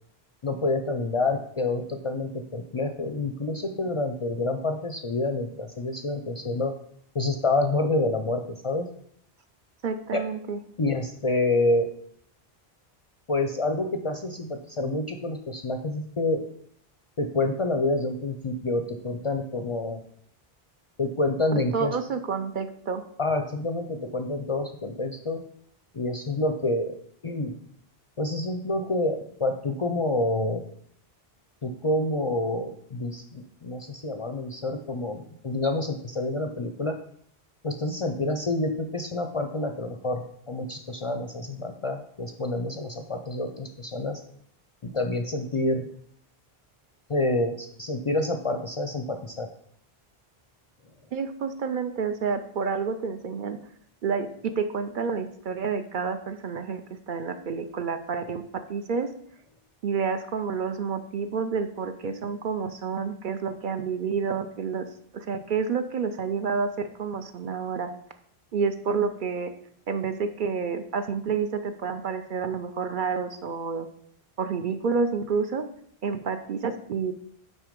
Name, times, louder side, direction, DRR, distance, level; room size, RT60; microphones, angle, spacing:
voice 1, 0.4-6.7 7.1-8.9 10.1-10.2 10.8-11.9 13.3-16.4 17.2-20.0 21.0-22.0 23.2-25.4 25.9-26.9 27.2-27.6 28.2-30.6 31.6-37.0 37.6-44.2 44.9-45.9 47.1-49.5, left 2 dB, 45° left, 6 dB, 0.4 m, -28 dB
voice 2, 9.8-10.6 21.7-23.0 51.1-53.6 54.0-58.4 58.7-59.1 59.8-64.9 65.1-67.9 68.5-69.5 69.9-73.9 74.4-75.6 76.0-77.1, right 5 dB, 60° right, 8 dB, 0.6 m, -29 dB
6.2 x 4.5 x 5.1 m, 0.65 s
omnidirectional pair, 1.0 m